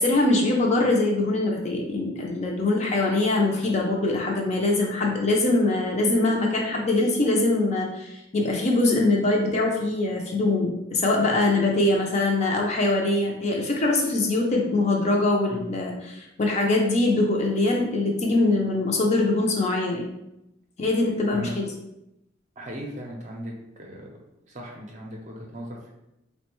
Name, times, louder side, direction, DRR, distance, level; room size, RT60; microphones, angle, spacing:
voice 1, 0.0-20.0 20.8-21.7, left 2 dB, 35° left, -1 dB, 0.5 m, -23 dB
voice 2, 22.6-24.2 24.5-25.9, equal, 35° right, -1 dB, 0.6 m, -37 dB
3.7 x 2.1 x 3.0 m, 0.86 s
head